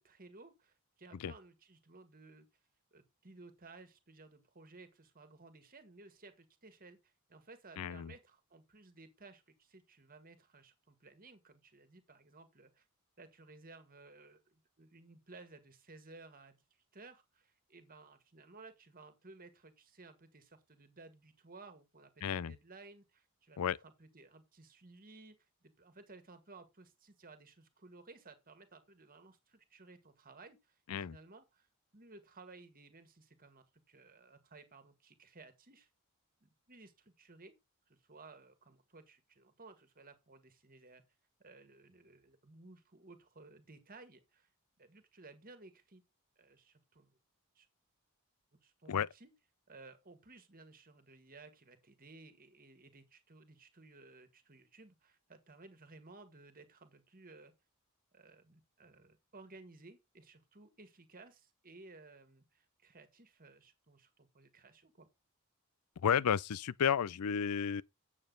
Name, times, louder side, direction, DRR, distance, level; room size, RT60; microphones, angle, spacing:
voice 1, 0.0-2.5 2.9-12.9 13.2-31.7 31.9-35.9 36.4-37.5 37.9-41.0 41.4-44.5 44.8-46.0 46.4-47.1 47.6-47.7 48.6-49.3 49.7-57.5 58.1-65.1, right 3 dB, 40° right, 1.8 m, -57 dB
voice 2, 7.8-8.1 22.2-22.5 23.6-23.8 30.9-31.2 48.9-49.1 66.0-67.8, left 8 dB, 85° left, 0.4 m, -32 dB
8.9 x 7.3 x 3.9 m
head